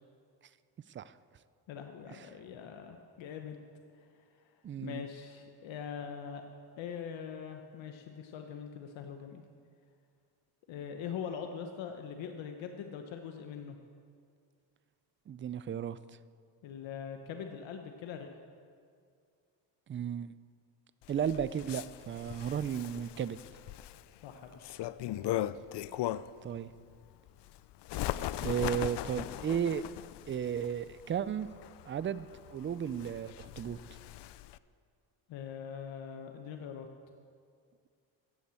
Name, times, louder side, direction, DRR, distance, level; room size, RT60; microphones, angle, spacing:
voice 1, 1.7-3.6 4.0-4.1 4.4-4.5 4.8-6.5 6.8-9.4 10.7-13.8 16.6-18.3 24.2-24.7 25.0-25.4 35.3-36.9, left 7 dB, 80° left, 5 dB, 1.1 m, -42 dB
voice 2, 4.6-5.0 15.3-16.0 19.9-20.3 21.1-23.4 26.4-26.7 28.4-29.8 30.3-31.5 31.9-33.8, right 8 dB, 30° right, 16 dB, 0.4 m, -34 dB
Bird, 21.0-26.5 26.9-34.6, left 14 dB, 65° left, 0.5 m, -39 dB
15.0 x 8.6 x 7.6 m, 2.2 s
cardioid pair, 120°, 45 cm